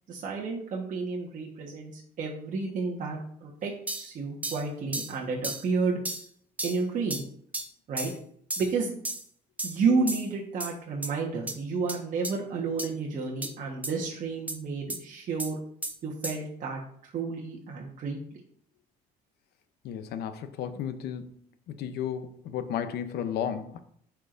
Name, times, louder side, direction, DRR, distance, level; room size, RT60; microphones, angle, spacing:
voice 1, 0.1-6.0 6.6-7.2 7.9-8.1 8.6-9.0 9.6-15.6 16.0-16.8 17.1-18.2, right 4 dB, 50° right, 1.3 m, -31 dB
sound 1, 3.9-4.1 4.4-4.6 4.9-5.1 5.4-5.6 6.0-6.2 6.6-6.8 7.1-7.2 7.5-7.7 8.0-8.2 8.5-8.7 9.0-9.2 9.6-9.8 10.1-10.3 10.6-10.7 11.0-11.1 11.5-11.6 11.9-12.0 12.2-12.3 12.8-12.9 13.4-13.5 13.8-13.9 14.5-14.6 14.9-15.0 15.4-15.5 15.8-15.9 16.2-16.4, right 1 dB, 10° right, 0.7 m, -33 dB
voice 2, 19.8-21.3 21.8-23.8, left 9 dB, 75° left, 0.7 m, -33 dB
11.0 x 4.6 x 2.6 m
cardioid pair, 110°, 17 cm